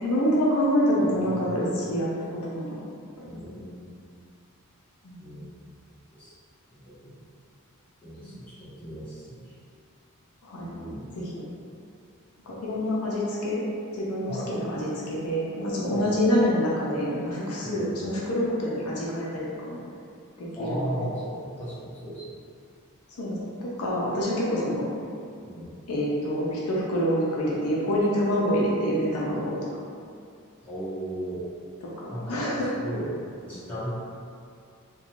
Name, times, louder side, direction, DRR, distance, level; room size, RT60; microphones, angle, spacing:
voice 1, 0.0-2.8 3.2-3.4 5.0-5.4 8.2-8.3 10.4-10.7 11.1-11.3 12.5-13.6 13.9-19.8 20.4-21.1 23.2-23.5 23.8-24.9 25.9-29.6 31.8-32.8, equal, 70° left, -5 dB, 0.5 m, -27 dB
voice 2, 1.0-1.6 3.2-3.9 5.2-5.8 6.2-6.3 6.7-7.2 8.0-9.5 10.6-11.0 14.3-14.5 15.9-16.2 17.6-18.0 20.5-22.4 25.4-25.7 30.6-31.4 32.1-32.4 32.7-33.9, right 1 dB, 10° left, -14 dB, 1.0 m, -36 dB
2.5 x 2.2 x 2.9 m, 2.4 s
head